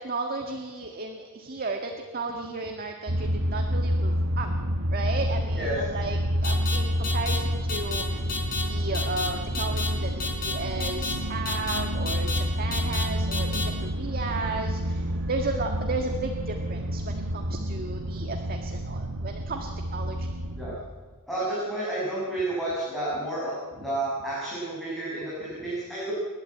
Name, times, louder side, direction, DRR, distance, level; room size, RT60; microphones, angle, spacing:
voice 1, 0.0-4.5 4.9-8.3 8.6-20.3 23.8-23.9, right 3 dB, 40° right, 3 dB, 1.7 m, -34 dB
sound 1, 3.1-20.8, equal, 70° right, 1.4 m, -29 dB
sound 2, 6.4-6.8 7.0-7.4 7.7-8.0 8.3-8.6 8.9-9.3 9.5-9.9 10.2-10.5 10.8-11.1 11.4-11.8 12.1-12.4 12.7-13.0 13.3-13.6, left 5 dB, 40° left, 4.4 m, -30 dB
voice 2, 21.3-26.1, right 2 dB, ahead, -8 dB, 6.5 m, -31 dB
29.5 x 12.0 x 8.6 m, 1.4 s
head